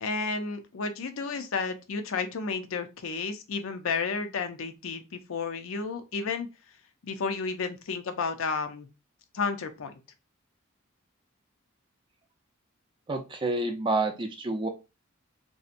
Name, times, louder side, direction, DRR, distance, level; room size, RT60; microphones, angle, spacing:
voice 1, 0.0-6.5 7.0-8.9 9.3-9.9, left 4 dB, 80° left, 8 dB, 0.5 m, -32 dB
voice 2, 13.1-14.7, right 2 dB, 25° right, 5 dB, 0.4 m, -28 dB
2.7 x 2.1 x 2.5 m, 0.27 s
head